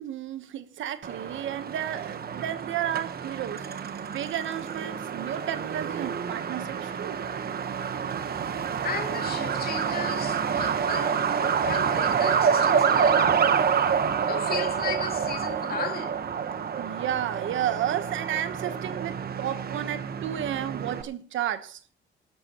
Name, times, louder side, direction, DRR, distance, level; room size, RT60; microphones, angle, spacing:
voice 1, 0.0-3.7 4.0-7.2 16.8-21.9, right 11 dB, 75° right, 1.2 m, -32 dB
Truck, 1.0-21.0, right 7 dB, 50° right, 1.2 m, -28 dB
voice 2, 8.8-13.4 14.3-16.2, left 5 dB, 50° left, 2.6 m, -35 dB
19.5 x 11.5 x 3.1 m
cardioid pair, 90°, 20 cm